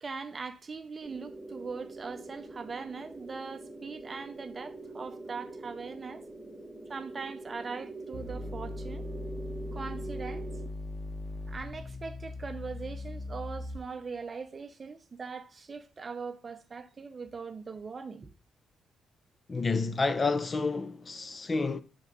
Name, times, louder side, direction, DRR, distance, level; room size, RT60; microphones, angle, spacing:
voice 1, 0.0-6.2 6.9-9.1 9.7-10.5 11.5-18.3, right 4 dB, 35° right, 0.6 m, -41 dB
sound 1, 1.0-10.7, right 2 dB, 15° right, 1.0 m, -44 dB
sound 2, 8.1-14.1, left 2 dB, 10° left, 0.8 m, -39 dB
voice 2, 19.5-21.8, left 3 dB, 30° left, 0.4 m, -29 dB
4.8 x 3.6 x 5.3 m
cardioid pair, 90°, 0 cm